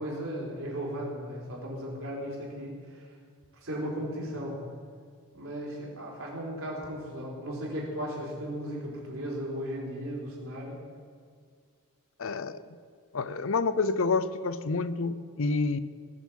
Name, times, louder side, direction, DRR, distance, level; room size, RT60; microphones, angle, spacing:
voice 1, 0.0-3.1 3.6-4.6 5.3-10.8, equal, 65° right, -3 dB, 4.4 m, -36 dB
voice 2, 12.2-12.6 13.1-15.8, left 4 dB, 60° left, 14 dB, 0.6 m, -28 dB
20.0 x 7.2 x 7.6 m, 2.1 s
head